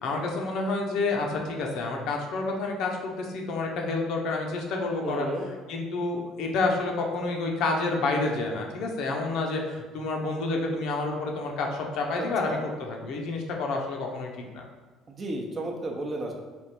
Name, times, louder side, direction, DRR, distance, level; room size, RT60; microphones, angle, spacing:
voice 1, 0.0-5.3 5.7-14.7, left 3 dB, 70° left, 1 dB, 0.7 m, -29 dB
voice 2, 5.0-5.5 12.1-12.6 15.1-16.3, right 1 dB, 30° right, 0 dB, 0.7 m, -33 dB
3.5 x 2.4 x 4.3 m, 1.3 s
cardioid pair, 100°, 0 cm